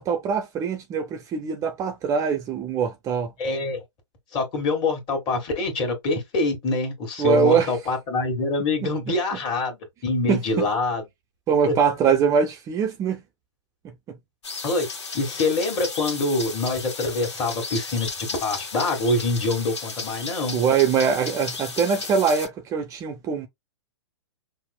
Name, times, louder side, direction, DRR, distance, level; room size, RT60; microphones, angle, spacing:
voice 1, 0.0-3.3 7.2-7.7 8.8-8.9 10.3-10.7 11.5-13.2 14.1-14.2 20.5-23.5, right 6 dB, 20° right, 0.6 m, -23 dB
voice 2, 3.4-3.8 4.3-9.8 10.0-11.0 11.7-11.8 14.6-14.9 15.1-20.6, left 2 dB, 30° left, 1.6 m, -25 dB
sound 1, 14.4-22.5, left 4 dB, 70° left, 1.2 m, -34 dB
5.7 x 2.1 x 2.2 m
figure-of-eight pair, 115°, 15 cm